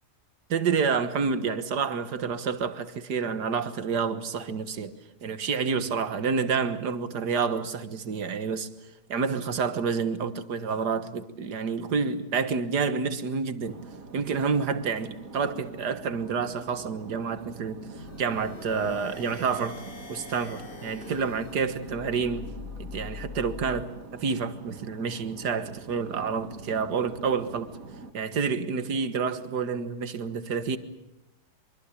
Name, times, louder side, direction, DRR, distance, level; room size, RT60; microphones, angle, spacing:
voice 1, 0.5-4.9 5.2-8.7 9.1-13.8 14.1-17.9 18.2-19.8 20.1-22.5 22.8-27.7 28.1-30.8, right 5 dB, 85° right, 2.0 m, -29 dB
sound 1, 13.6-28.1, right 4 dB, 60° right, 2.1 m, -45 dB
sound 2, 17.9-23.9, left 5 dB, 35° left, 1.6 m, -43 dB
24.5 x 24.5 x 8.5 m
omnidirectional pair, 1.7 m